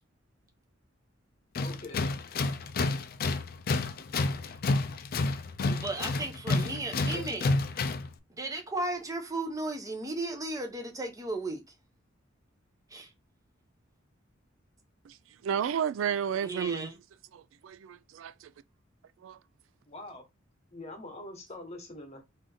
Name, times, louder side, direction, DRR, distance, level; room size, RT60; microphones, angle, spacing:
Tools, 1.5-8.1, left 3 dB, 50° left, 0.4 m, -30 dB
voice 1, 1.6-2.1 7.1-7.4 19.9-20.3 20.7-22.2, left 2 dB, 35° left, 0.9 m, -44 dB
voice 2, 5.7-7.5 8.3-11.6 12.9-13.1 16.4-16.9, right 2 dB, 15° right, 0.7 m, -35 dB
voice 3, 15.4-16.9 17.3-18.5 19.2-19.4, right 8 dB, 80° right, 0.3 m, -32 dB
3.7 x 2.6 x 3.4 m
head